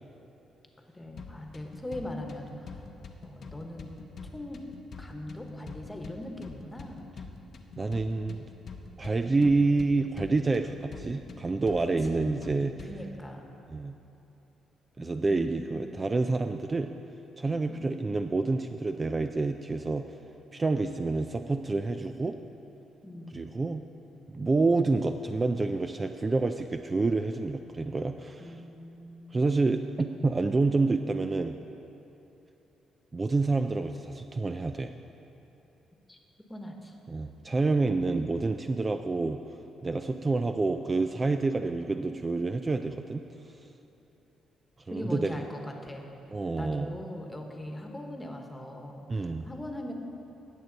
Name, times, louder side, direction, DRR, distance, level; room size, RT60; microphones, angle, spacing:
voice 1, 0.9-2.8 3.2-3.9 4.3-4.6 5.0-7.1 12.1-12.4 12.8-13.5 15.0-16.1 17.7-18.1 23.0-23.5 28.4-29.4 36.1-36.2 36.5-37.0 44.9-46.1 46.6-49.9, left 1 dB, 15° left, 2 dB, 1.2 m, -41 dB
sound 1, 1.2-13.2, left 4 dB, 55° left, 0.8 m, -46 dB
voice 2, 7.8-8.4 9.0-12.9 13.7-14.0 15.0-16.9 17.4-20.1 20.5-22.4 23.3-23.8 24.3-28.5 29.3-31.5 33.1-34.9 37.1-39.4 39.8-43.2 44.9-45.4 46.3-47.0 49.1-49.5, right 3 dB, 25° right, 7 dB, 0.3 m, -28 dB
17.5 x 6.4 x 4.0 m, 3.0 s
cardioid pair, 90°, 0 cm